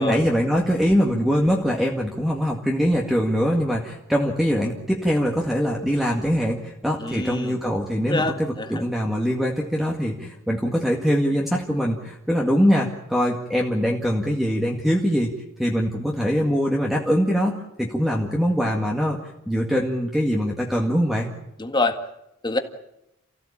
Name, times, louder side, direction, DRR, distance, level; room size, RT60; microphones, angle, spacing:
voice 1, 0.0-15.3 15.6-19.2 19.5-21.3, equal, ahead, -1 dB, 2.0 m, -23 dB
voice 2, 7.0-7.6 8.0-8.8 21.6-22.0 22.4-22.6, left 2 dB, 20° left, 6 dB, 1.8 m, -25 dB
28.5 x 16.0 x 8.7 m, 0.86 s
head